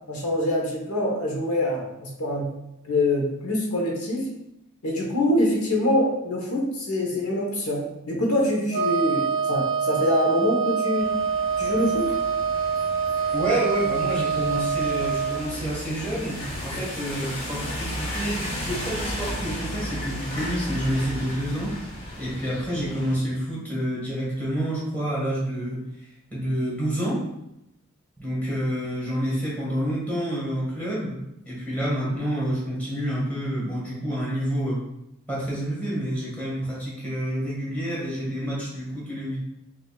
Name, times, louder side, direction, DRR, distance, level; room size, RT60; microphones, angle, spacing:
voice 1, 0.1-2.5 2.8-4.3 4.8-11.1 11.6-12.1, left 1 dB, 85° left, -1 dB, 1.1 m, -25 dB
Wind instrument woodwind instrument, 8.7-15.5, right 6 dB, 45° right, 0.6 m, -25 dB
sound 1, 11.0-23.2, equal, 25° left, 0.8 m, -34 dB
voice 2, 13.3-21.7 22.2-25.8 26.3-27.2 28.2-31.2 31.4-34.8 35.3-39.4, equal, 5° left, -7 dB, 1.5 m, -28 dB
5.2 x 2.7 x 2.4 m, 0.84 s
head